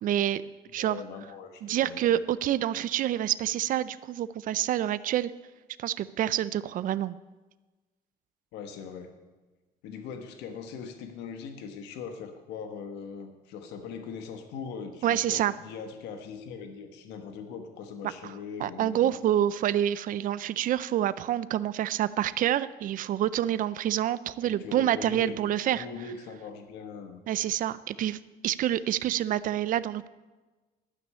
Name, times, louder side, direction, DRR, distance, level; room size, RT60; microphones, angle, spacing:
voice 1, 0.0-0.4 0.7-1.0 1.6-5.3 5.8-7.2 15.0-15.5 18.2-18.3 18.6-25.9 27.3-28.2 28.4-30.1, right 11 dB, 55° right, 16 dB, 0.5 m, -27 dB
voice 2, 0.8-2.2 8.5-9.1 9.8-19.1 20.4-20.5 24.4-27.2, left 6 dB, 90° left, 6 dB, 1.2 m, -41 dB
12.0 x 6.2 x 8.7 m, 1.2 s
cardioid pair, 110°, 17 cm